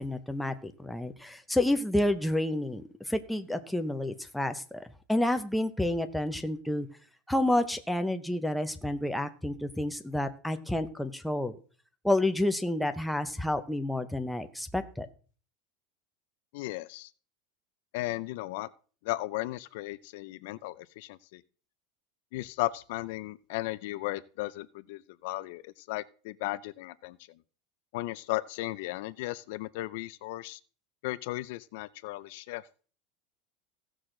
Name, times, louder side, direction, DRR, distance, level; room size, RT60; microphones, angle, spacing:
voice 1, 0.0-6.9 7.3-11.6 12.0-15.1, left 1 dB, ahead, 7 dB, 0.7 m, -29 dB
voice 2, 16.5-17.1 17.9-18.7 19.0-21.4 22.3-27.2 27.9-30.6 31.0-32.6, left 18 dB, 65° left, 16 dB, 0.5 m, -35 dB
16.0 x 6.3 x 3.8 m, 0.40 s
supercardioid pair, 150°, 0 cm